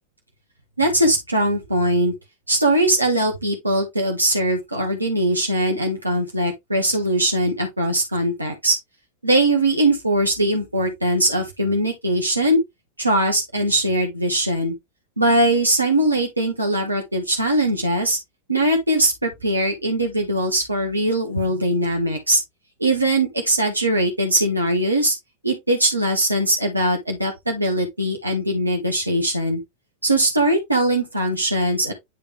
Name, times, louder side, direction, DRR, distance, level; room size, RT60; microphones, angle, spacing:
voice 1, 0.8-2.1 2.5-8.8 9.2-12.6 13.0-14.7 15.2-18.2 18.5-22.4 22.8-25.1 25.4-29.6 30.0-31.9, right 1 dB, 85° right, 1.2 m, -21 dB
9.4 x 3.4 x 3.3 m
figure-of-eight pair, 90°, 0 cm